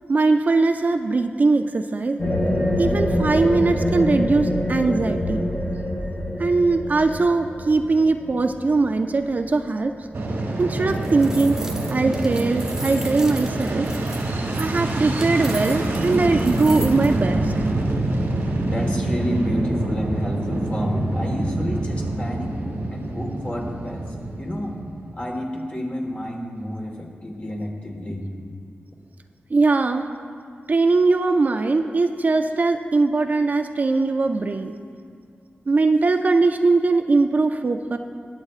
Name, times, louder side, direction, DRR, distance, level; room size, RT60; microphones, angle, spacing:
voice 1, 0.1-2.2 2.8-5.4 6.4-9.9 10.6-11.6 11.9-13.9 14.3-17.5 29.5-30.1 30.7-34.7 35.7-38.0, right 3 dB, 45° right, 6 dB, 0.4 m, -20 dB
sound 1, 2.2-9.5, left 1 dB, 80° left, 2.9 m, -25 dB
Fixed-wing aircraft airplane, 10.1-25.3, right 2 dB, 90° right, 1.3 m, -26 dB
sound 2, 10.8-17.1, right 1 dB, 15° right, 0.9 m, -38 dB
voice 2, 18.7-22.5 22.9-24.0 24.4-24.8 25.1-28.2, equal, 30° left, 0 dB, 1.5 m, -29 dB
20.0 x 7.8 x 2.4 m, 2.2 s
wide cardioid pair, 120°, 4 cm